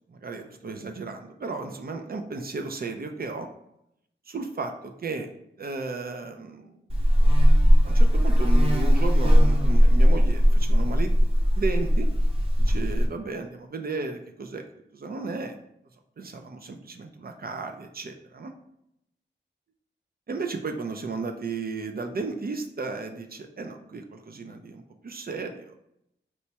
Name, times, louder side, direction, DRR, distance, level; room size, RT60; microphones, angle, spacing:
voice 1, 0.1-3.5 4.3-5.3 5.6-6.7 7.8-11.1 11.6-12.1 12.6-14.6 14.9-15.6 16.2-18.5 20.3-25.7, right 4 dB, 50° right, 5 dB, 0.4 m, -34 dB
Buzz, 6.9-13.1, equal, 30° right, 0.8 m, -19 dB
4.3 x 2.2 x 2.8 m, 0.78 s
cardioid pair, 50°, 20 cm